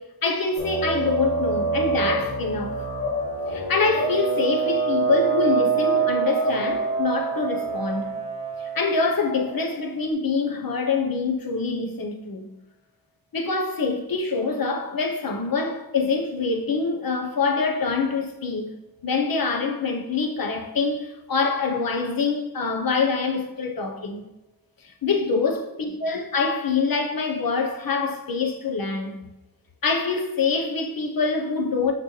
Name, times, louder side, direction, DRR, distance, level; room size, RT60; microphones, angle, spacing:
voice 1, 0.0-2.8 3.5-8.1 8.6-12.5 13.3-18.7 19.0-24.3 24.8-29.2 29.8-31.9, left 4 dB, 60° left, 1.0 m, -25 dB
sound 1, 0.6-9.8, right 4 dB, 85° left, 2.3 m, -26 dB
6.0 x 5.9 x 3.2 m
cardioid pair, 45°, 39 cm